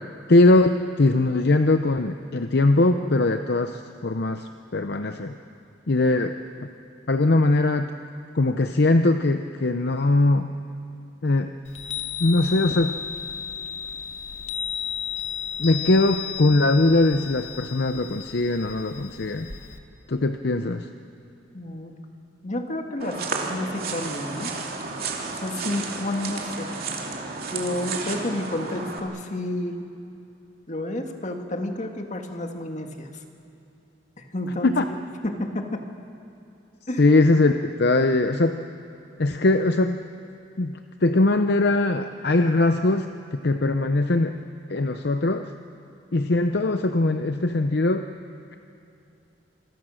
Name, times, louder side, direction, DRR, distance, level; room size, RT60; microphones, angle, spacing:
voice 1, 0.3-5.3 5.9-6.4 7.1-7.9 8.3-10.5 11.2-11.5 12.2-13.0 15.6-19.5 20.1-20.9 34.6-34.8 37.0-38.6 39.2-40.0 40.6-44.4 44.7-45.5 46.1-48.1, left 2 dB, 60° left, 7 dB, 0.7 m, -21 dB
Chime, 11.7-19.8, left 8 dB, 85° left, 1.9 m, -34 dB
voice 2, 21.5-22.0 22.4-24.5 25.3-26.7 27.5-29.8 30.7-33.2 34.3-34.7 35.2-35.8 36.9-37.1, left 1 dB, 40° left, 4 dB, 1.9 m, -30 dB
sound 1, 23.0-29.0, right 4 dB, 55° right, 2.8 m, -32 dB
27.0 x 23.0 x 6.4 m, 2.7 s
head